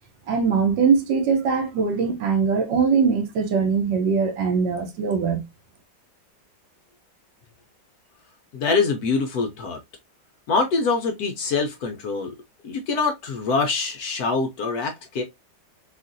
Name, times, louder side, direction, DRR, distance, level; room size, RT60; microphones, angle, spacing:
voice 1, 0.3-5.4, right 5 dB, 75° right, 1.3 m, -21 dB
voice 2, 8.5-9.8 10.5-12.3 12.6-15.2, left 4 dB, 65° left, 1.0 m, -24 dB
3.7 x 2.4 x 2.5 m
omnidirectional pair, 2.0 m